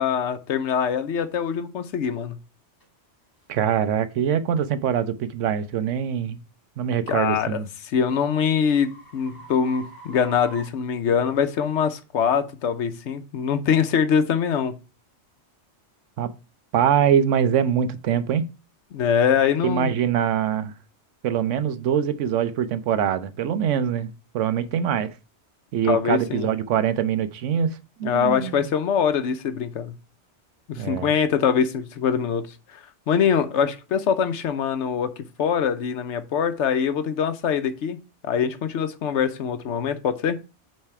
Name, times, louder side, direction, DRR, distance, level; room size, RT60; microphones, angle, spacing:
voice 1, 0.0-2.4 7.1-14.8 18.9-19.9 25.8-26.5 28.0-30.0 30.7-32.5 32.7-32.8 33.1-38.0 38.2-40.4, left 7 dB, 75° left, 1.0 m, -23 dB
sound 1, 2.8-2.9 3.5-3.7 4.3-4.5 7.1-11.6, right 2 dB, 20° left, 1.2 m, -47 dB
voice 2, 3.5-6.4 6.8-7.7 16.2-16.3 16.7-18.4 19.6-20.7 21.2-25.1 25.7-28.6 30.8-31.1, right 8 dB, 85° right, 1.0 m, -23 dB
8.7 x 3.3 x 4.7 m
omnidirectional pair, 1.2 m